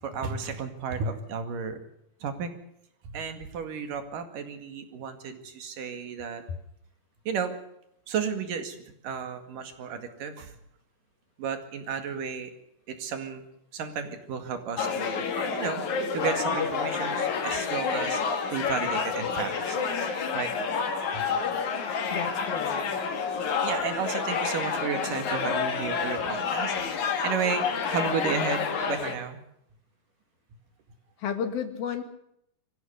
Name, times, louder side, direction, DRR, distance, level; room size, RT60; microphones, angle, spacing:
voice 1, 0.0-1.8 2.2-2.5 3.1-6.4 7.3-7.5 8.1-8.8 9.0-10.6 11.4-12.5 12.9-13.4 13.7-15.8 16.1-18.2 18.5-20.5 21.1-21.2 23.6-26.7 27.2-29.4, right 6 dB, 65° right, 7 dB, 3.7 m, -33 dB
sound 1, 14.8-29.2, left 5 dB, 55° left, 3.3 m, -29 dB
voice 2, 22.1-22.9 31.2-32.0, left 7 dB, 75° left, 7 dB, 3.9 m, -32 dB
24.0 x 15.5 x 7.0 m, 0.76 s
omnidirectional pair, 4.3 m